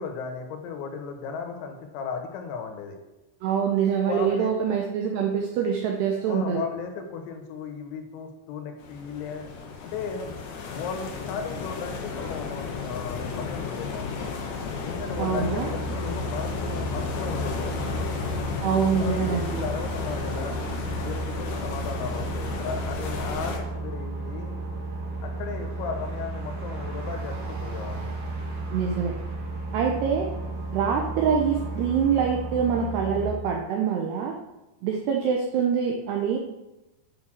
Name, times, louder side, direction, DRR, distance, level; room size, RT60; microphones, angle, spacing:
voice 1, 0.0-3.0 4.1-4.5 6.3-9.5 9.8-10.3 10.7-14.2 14.8-18.2 19.0-24.6 25.2-28.1, left 6 dB, 85° left, 4 dB, 3.9 m, -35 dB
voice 2, 3.4-6.6 15.2-15.7 18.6-19.6 28.7-29.1 29.7-30.3 30.7-34.4 34.8-36.4, right 7 dB, 85° right, 2 dB, 2.3 m, -25 dB
sound 1, 8.8-23.6, left 5 dB, 70° left, 2.6 m, -33 dB
sound 2, 15.0-33.3, right 2 dB, 60° right, 2.4 m, -33 dB
9.2 x 6.0 x 6.4 m, 1.0 s
omnidirectional pair, 5.9 m